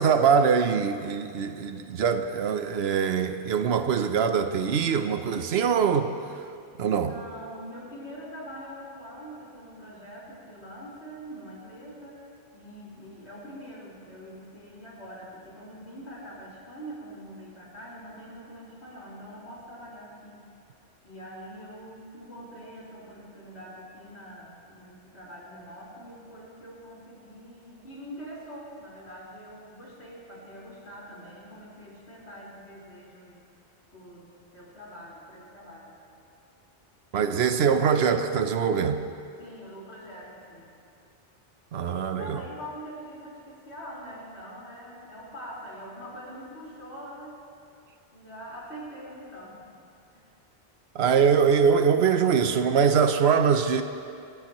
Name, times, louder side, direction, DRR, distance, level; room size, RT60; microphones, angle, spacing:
voice 1, 0.0-6.1 6.8-7.1 37.1-39.0 41.7-42.4 50.9-53.8, right 6 dB, 75° right, 8 dB, 1.1 m, -23 dB
voice 2, 7.0-12.2 12.5-20.4 21.0-33.4 33.9-35.9 39.4-40.7 42.2-47.4 48.1-49.8 50.1-50.3, equal, 85° left, -7 dB, 4.9 m, -44 dB
27.5 x 14.5 x 3.1 m, 2.4 s
omnidirectional pair, 1.1 m